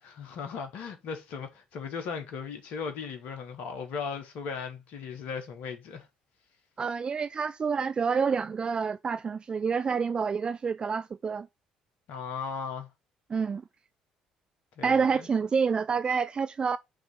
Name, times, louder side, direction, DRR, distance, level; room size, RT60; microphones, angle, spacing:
voice 1, 0.0-6.1 12.1-12.9 14.8-15.3, left 6 dB, 60° left, 1.0 m, -37 dB
voice 2, 6.8-11.5 13.3-13.6 14.8-16.8, right 5 dB, 35° right, 0.3 m, -28 dB
7.5 x 2.8 x 5.2 m
hypercardioid pair, 50°, 3 cm